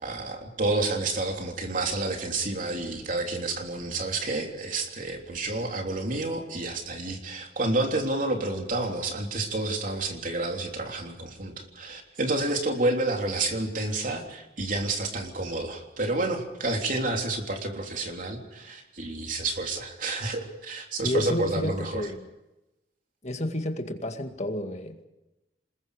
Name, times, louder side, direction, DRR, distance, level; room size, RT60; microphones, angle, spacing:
voice 1, 0.0-22.1, right 2 dB, 50° right, 3.4 m, -29 dB
voice 2, 21.0-22.2 23.2-25.1, left 1 dB, 40° left, 2.2 m, -31 dB
28.0 x 21.0 x 5.0 m
head